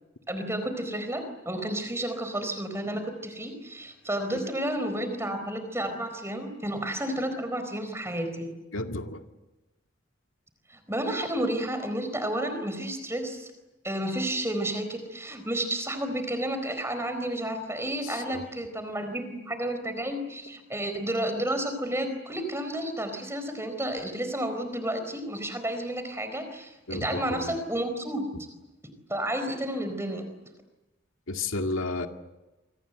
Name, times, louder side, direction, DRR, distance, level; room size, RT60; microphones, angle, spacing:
voice 1, 0.3-8.5 10.7-13.5 13.8-28.2 29.1-30.3, right 1 dB, 15° right, 8 dB, 4.3 m, -31 dB
voice 2, 8.7-9.2 18.0-18.4 26.9-27.6 31.3-32.1, left 2 dB, 80° left, 5 dB, 2.1 m, -32 dB
27.5 x 24.5 x 8.0 m, 1.0 s
head